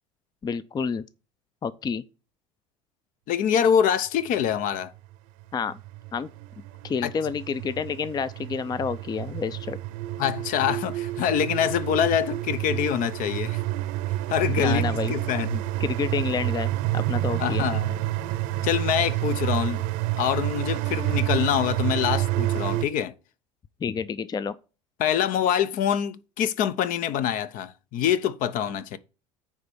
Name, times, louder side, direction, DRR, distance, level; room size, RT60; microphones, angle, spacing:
voice 1, 0.4-1.0 1.6-2.0 5.5-5.8 6.1-6.3 6.8-9.8 14.6-15.1 15.8-17.7 23.8-24.5, left 6 dB, 25° left, 0.5 m, -29 dB
voice 2, 3.3-4.9 7.0-7.1 10.2-13.6 14.3-15.6 17.4-18.0 18.6-19.9 20.2-23.1 25.0-29.0, left 9 dB, 55° left, 0.8 m, -25 dB
sound 1, 4.6-4.7 5.4-22.8, right 16 dB, 70° right, 0.9 m, -29 dB
9.3 x 3.5 x 6.9 m
hypercardioid pair, 80°, 16 cm